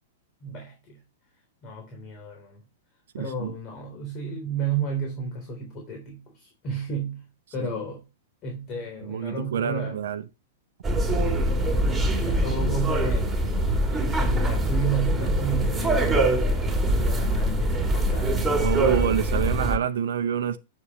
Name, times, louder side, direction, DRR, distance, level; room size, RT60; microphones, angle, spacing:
voice 1, 0.4-1.0 1.6-2.6 3.2-7.2 7.5-8.0 8.4-10.0 11.5-13.3 13.8-16.5 17.0-18.3, right 4 dB, 35° left, 3.4 m, -32 dB
voice 2, 3.1-3.5 7.6-7.7 9.0-10.2 18.6-20.6, right 8 dB, 65° right, 0.7 m, -27 dB
sound 1, 10.8-19.8, right 1 dB, 10° right, 2.7 m, -23 dB
9.6 x 7.0 x 3.1 m
figure-of-eight pair, 100°, 0 cm